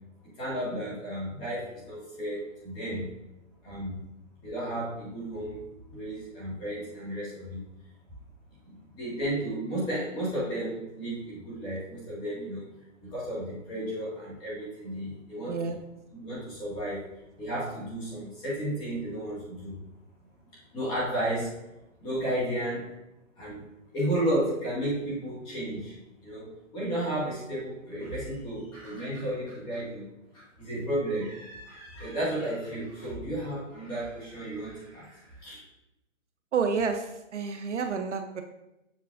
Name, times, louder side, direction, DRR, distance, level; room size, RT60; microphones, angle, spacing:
voice 1, 0.2-3.1 3.6-4.0 4.4-5.6 5.9-7.6 8.6-12.7 13.0-15.8 16.1-17.0 17.4-19.8 20.7-21.6 22.0-22.8 23.4-23.7 23.9-26.0 26.2-30.1 30.3-35.6, right 1 dB, 10° left, -8 dB, 1.7 m, -33 dB
voice 2, 15.5-15.8 36.5-37.0 37.3-38.4, right 5 dB, 60° right, 6 dB, 0.6 m, -29 dB
7.3 x 5.6 x 2.4 m, 0.92 s
hypercardioid pair, 160°, 40 cm